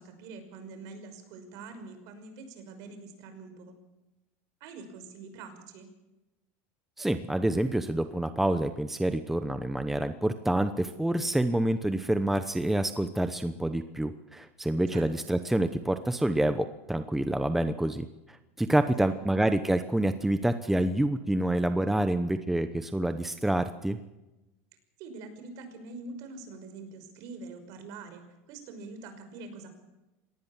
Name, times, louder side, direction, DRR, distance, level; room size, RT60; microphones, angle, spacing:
voice 1, 0.0-3.8 4.6-5.9 14.9-15.3 19.0-19.2 25.0-29.7, right 3 dB, 55° right, 8 dB, 5.7 m, -45 dB
voice 2, 7.0-24.0, right 1 dB, 5° right, 9 dB, 0.9 m, -27 dB
25.5 x 18.5 x 7.3 m, 1.0 s
supercardioid pair, 145°, 7 cm